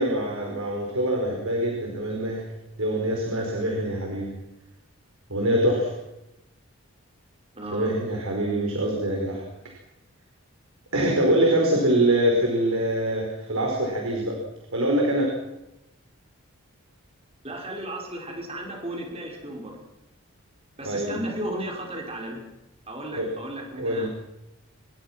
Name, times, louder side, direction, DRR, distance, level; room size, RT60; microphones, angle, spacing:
voice 1, 0.0-2.4 2.8-4.3 5.3-5.9 7.7-9.5 10.9-14.4 14.7-15.3 20.8-21.2 23.1-23.3 23.8-24.1, right 1 dB, 70° right, 0 dB, 5.0 m, -24 dB
voice 2, 7.5-7.9 17.4-19.8 20.8-22.4 22.9-24.1, right 1 dB, 25° right, 0 dB, 5.4 m, -34 dB
27.0 x 22.0 x 6.1 m, 0.92 s
head